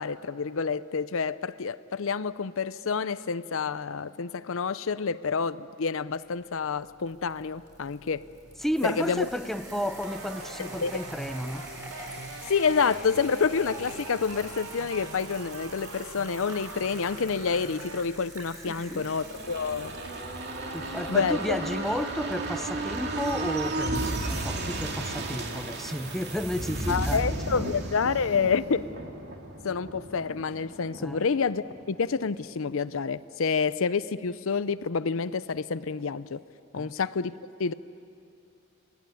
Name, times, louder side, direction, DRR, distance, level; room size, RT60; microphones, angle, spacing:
voice 1, 0.0-8.2 8.8-9.3 10.6-11.0 12.4-19.9 21.1-21.6 26.9-28.9 29.6-36.4 36.7-37.7, left 5 dB, 65° left, 15 dB, 0.6 m, -28 dB
sound 1, 6.6-24.6, right 1 dB, 15° right, 7.0 m, -46 dB
voice 2, 8.6-11.7 18.7-19.1 20.7-27.2 27.5-27.6 31.0-31.2 36.7-36.9, equal, ahead, 9 dB, 0.7 m, -32 dB
sound 2, 10.0-18.0, right 3 dB, 70° right, 1.2 m, -43 dB
sound 3, 18.9-32.3 32.7-32.8, right 2 dB, 55° right, 2.5 m, -34 dB
29.5 x 19.5 x 9.3 m, 2.6 s
head